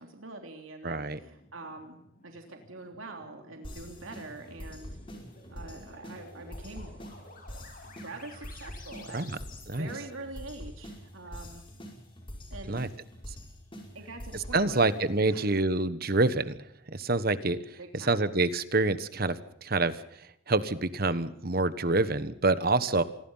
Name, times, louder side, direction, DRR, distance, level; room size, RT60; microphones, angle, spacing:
voice 1, 0.0-2.0 2.2-4.9 5.5-7.0 8.0-9.3 9.7-11.6 12.5-12.8 13.9-15.0 15.3-15.6 17.8-18.2 22.8-22.9, right 2 dB, 80° right, 3 dB, 3.4 m, -44 dB
voice 2, 0.8-1.2 9.1-9.3 9.7-9.9 12.7-12.9 14.5-16.6 16.9-17.6 18.1-20.0 20.5-23.0, right 2 dB, 45° right, 13 dB, 1.3 m, -26 dB
sound 1, 1.3-9.8, left 2 dB, 40° left, 7.7 m, -53 dB
sound 2, 3.6-15.2, equal, 25° left, 5.8 m, -45 dB
27.5 x 21.0 x 5.7 m, 0.76 s
head